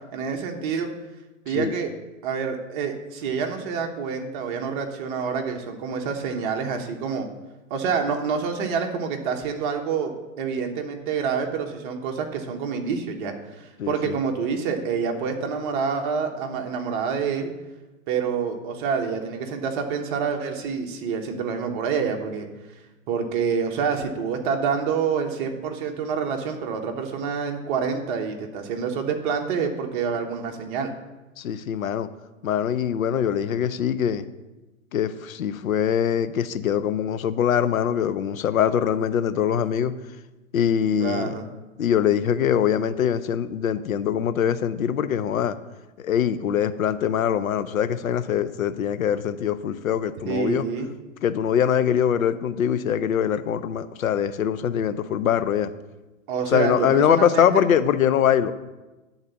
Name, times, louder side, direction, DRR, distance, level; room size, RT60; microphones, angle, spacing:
voice 1, 0.1-0.9 1.4-1.9 2.2-7.3 7.7-10.1 10.4-17.5 18.1-22.5 23.1-30.9 41.0-41.5 50.3-50.9 56.3-57.6, right 6 dB, 40° right, 3 dB, 1.2 m, -27 dB
voice 2, 13.8-14.2 31.4-32.1 32.4-34.2 34.9-39.9 40.5-41.3 41.8-45.6 46.0-50.6 51.2-55.7 56.5-58.5, left 9 dB, 85° left, 13 dB, 0.7 m, -23 dB
10.0 x 4.0 x 6.9 m, 1.1 s
hypercardioid pair, 140°, 40 cm